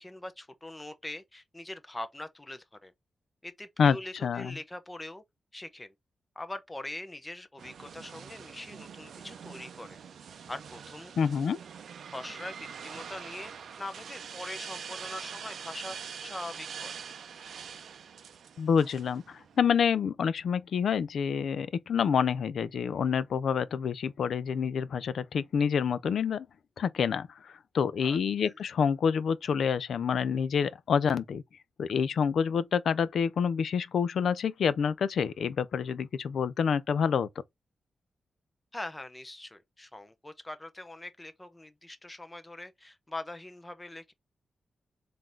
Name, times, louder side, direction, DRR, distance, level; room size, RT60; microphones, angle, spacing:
voice 1, 0.0-2.9 3.4-5.2 5.5-5.9 6.4-10.0 10.5-11.1 12.1-13.5 13.8-17.0 28.0-28.2 28.5-28.6 38.7-44.1, left 1 dB, 15° left, 0.7 m, -42 dB
voice 2, 4.2-4.6 11.2-11.6 18.6-26.5 26.8-31.4 31.8-37.3, left 7 dB, 75° left, 0.4 m, -27 dB
sound 1, 7.6-19.6, right 7 dB, 75° right, 0.5 m, -44 dB
3.8 x 2.6 x 4.4 m
wide cardioid pair, 115°, 0 cm